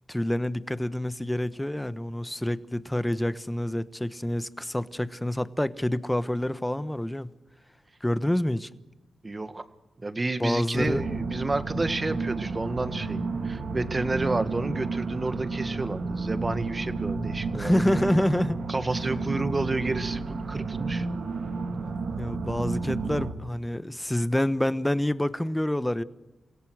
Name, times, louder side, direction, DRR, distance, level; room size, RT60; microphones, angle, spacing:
voice 1, 0.1-7.3 8.0-8.7 10.4-11.0 17.5-18.6 22.2-26.0, left 1 dB, 10° left, 1.1 m, -27 dB
voice 2, 9.2-9.7 10.0-18.1 18.7-21.1, right 2 dB, 30° right, 1.7 m, -30 dB
sound 1, 10.7-23.3, right 3 dB, 70° right, 2.5 m, -31 dB
28.5 x 17.0 x 6.4 m
cardioid pair, 60°, 0 cm